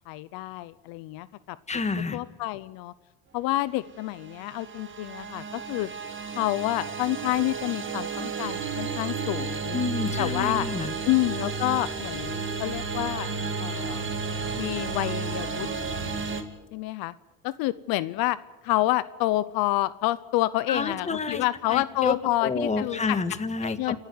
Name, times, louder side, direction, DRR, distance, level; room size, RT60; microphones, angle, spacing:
voice 1, 0.1-1.6 2.1-2.9 3.3-5.9 6.4-9.8 10.2-10.7 11.1-13.3 13.6-14.1 14.6-15.7 16.7-17.1 17.4-18.4 18.6-23.2 23.6-24.0, left 17 dB, 80° left, 18 dB, 0.8 m, -28 dB
voice 2, 1.7-2.2 9.7-10.9 20.7-21.4 21.7-22.1 22.4-24.0, left 4 dB, 20° left, 11 dB, 1.6 m, -29 dB
sound 1, 4.2-16.4, right 4 dB, 35° right, 2.4 m, -32 dB
29.0 x 11.5 x 9.6 m, 1.1 s
cardioid pair, 115°, 36 cm